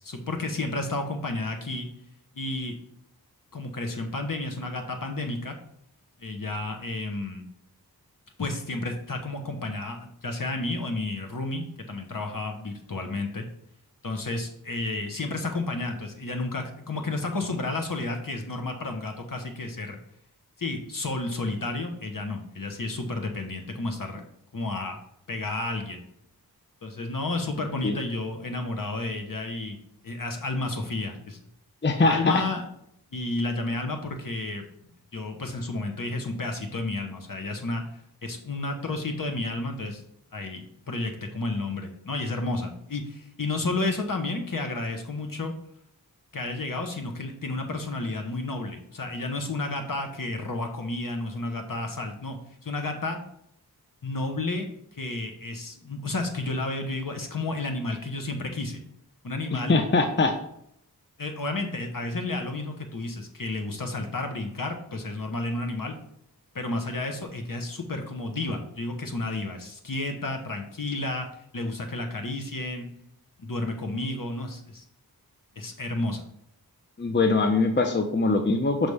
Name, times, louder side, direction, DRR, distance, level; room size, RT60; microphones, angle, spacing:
voice 1, 0.0-1.9 2.3-2.8 3.5-5.5 6.2-7.4 8.4-13.4 14.0-20.0 20.6-24.2 24.5-25.0 25.3-26.0 26.8-29.8 30.0-31.4 32.0-32.6 33.1-34.6 35.1-37.8 38.2-40.0 40.3-45.5 46.3-52.4 52.6-53.2 54.0-58.8 59.2-59.7 61.2-66.0 66.5-71.3 71.5-72.9 73.4-74.8 75.6-76.2, left 2 dB, 55° left, 4 dB, 1.1 m, -31 dB
voice 2, 31.8-32.4 59.5-60.3 77.0-78.9, left 3 dB, 30° left, 5 dB, 0.6 m, -22 dB
6.0 x 3.3 x 5.4 m, 0.73 s
wide cardioid pair, 55°, 38 cm